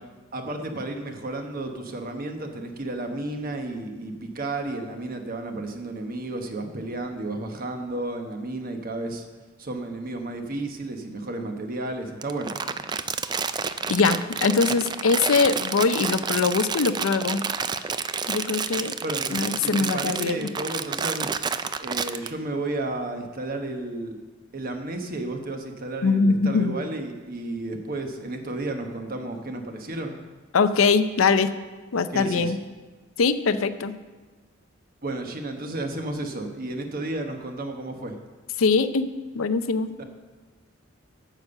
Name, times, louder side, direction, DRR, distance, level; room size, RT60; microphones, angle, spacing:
voice 1, 0.3-9.3 9.6-12.6 19.0-21.3 21.8-24.2 24.5-30.2 32.1-32.5 35.0-38.2 40.0-40.1, right 2 dB, 45° right, 5 dB, 1.1 m, -32 dB
Crumpling crinkling, 12.2-22.3, right 6 dB, 20° right, 0.3 m, -29 dB
voice 2, 13.9-17.4 18.3-19.0 19.3-20.5 26.0-26.8 30.5-31.5 31.9-32.6 33.2-33.9 38.6-39.9, left 4 dB, 85° left, 11 dB, 0.6 m, -22 dB
9.1 x 6.9 x 6.8 m, 1.3 s
head